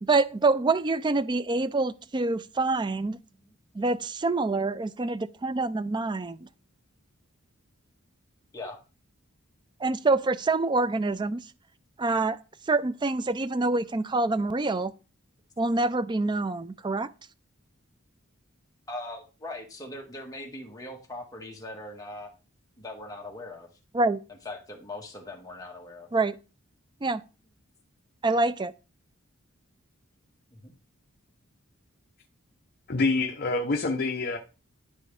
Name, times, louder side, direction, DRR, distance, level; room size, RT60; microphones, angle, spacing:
voice 1, 0.0-3.2 3.8-6.4 9.8-11.4 12.0-12.4 12.7-14.9 15.6-17.1 23.9-24.2 26.1-26.3 27.0-27.2 28.2-28.7, right 3 dB, 20° right, 0.4 m, -26 dB
voice 2, 3.2-3.5 8.5-8.8 18.9-22.3 22.8-23.7 24.3-26.1 30.5-30.7, left 2 dB, 15° left, 1.6 m, -41 dB
voice 3, 32.9-34.4, left 3 dB, 45° left, 0.8 m, -26 dB
11.5 x 4.6 x 3.4 m
head